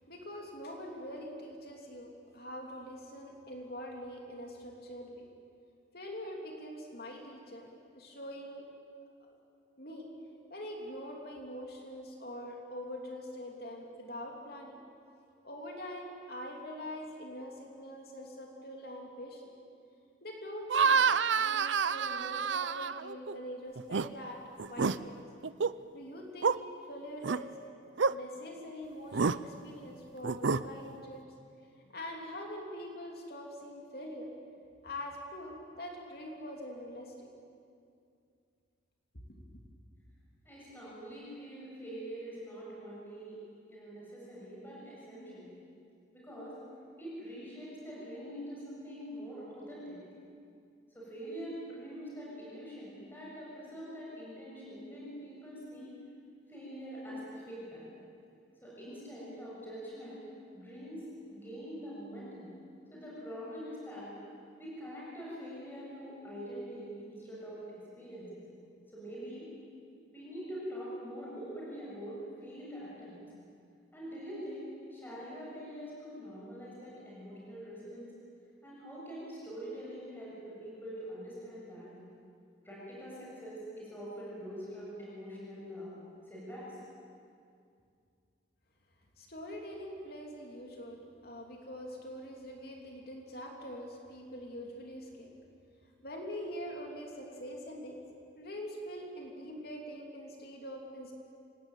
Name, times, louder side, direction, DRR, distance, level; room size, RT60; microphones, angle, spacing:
voice 1, 0.1-5.3 5.9-8.7 9.8-10.1 10.5-14.8 15.4-19.4 20.2-24.4 24.7-25.2 25.9-26.6 26.9-27.6 28.1-31.3 31.9-34.3 34.8-37.3 39.3-39.4 89.2-95.3 96.0-98.0 98.4-101.1, equal, 55° left, 1 dB, 3.2 m, -44 dB
sound 1, 20.7-23.3 23.8-24.1 24.6-25.0 25.4-25.7 26.4-26.6 27.2-27.4 28.0-28.1 29.1-29.4 30.2-30.6, right 5 dB, 80° right, 0.6 m, -28 dB
voice 2, 40.4-43.4 43.7-45.5 46.1-46.6 47.0-50.0 50.9-56.0 56.5-57.8 58.6-60.2 60.5-61.1 61.3-62.5 62.9-64.1 64.6-68.4 68.9-69.5 70.1-73.2 73.9-78.1 78.6-81.9 82.6-86.0 86.2-86.8, equal, 10° left, -7 dB, 7.3 m, -44 dB
26.5 x 19.5 x 9.1 m, 2.4 s
head